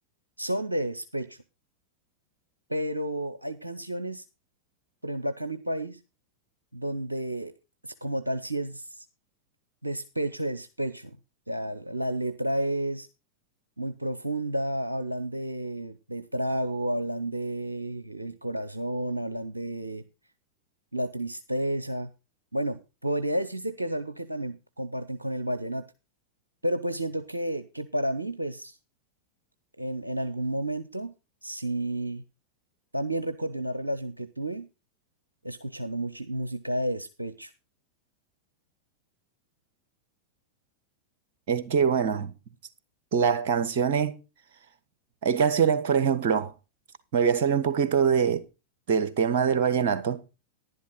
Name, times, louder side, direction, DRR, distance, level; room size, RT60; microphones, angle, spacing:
voice 1, 0.4-1.4 2.7-4.2 5.0-6.0 6.7-7.5 7.8-9.1 9.8-11.2 11.5-13.1 13.8-20.0 20.9-22.1 22.5-25.8 26.6-28.8 29.8-31.1 31.4-32.2 32.9-34.7 35.4-37.5, right 1 dB, 85° right, 0.6 m, -31 dB
voice 2, 41.5-42.3 43.1-44.1 45.2-46.5 47.1-48.4 48.9-50.2, right 7 dB, 50° right, 1.3 m, -23 dB
11.0 x 11.0 x 3.9 m
figure-of-eight pair, 90°, 0 cm